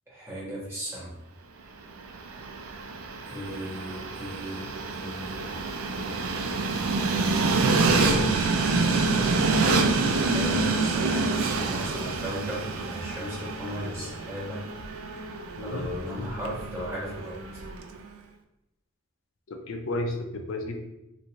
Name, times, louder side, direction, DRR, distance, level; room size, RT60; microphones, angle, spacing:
voice 1, 0.1-1.1 3.2-5.5 9.6-14.6 15.6-17.4, equal, 15° right, -7 dB, 1.1 m, -36 dB
Train, 1.9-18.0, right 3 dB, 90° right, 0.4 m, -27 dB
voice 2, 7.7-8.5 15.6-16.3 19.5-20.7, left 2 dB, 70° left, 4 dB, 0.5 m, -33 dB
3.3 x 2.7 x 3.0 m, 0.90 s
head